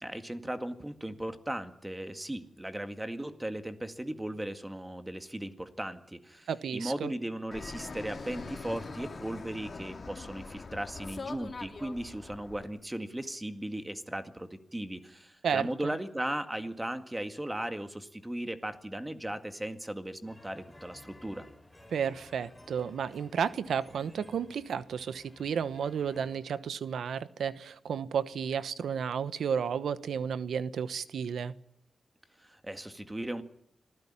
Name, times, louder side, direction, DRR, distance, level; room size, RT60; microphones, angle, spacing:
voice 1, 0.0-21.5 32.4-33.4, right 1 dB, 10° right, 8 dB, 1.9 m, -37 dB
voice 2, 6.5-7.1 15.4-15.9 21.9-31.5, right 7 dB, 90° right, 14 dB, 1.1 m, -32 dB
Fixed-wing aircraft airplane, 7.5-12.7, left 3 dB, 45° left, 2.8 m, -43 dB
sound 1, 20.3-26.4, left 1 dB, 10° left, 4.5 m, -55 dB
26.0 x 15.5 x 10.0 m, 0.73 s
cardioid pair, 85°, 0 cm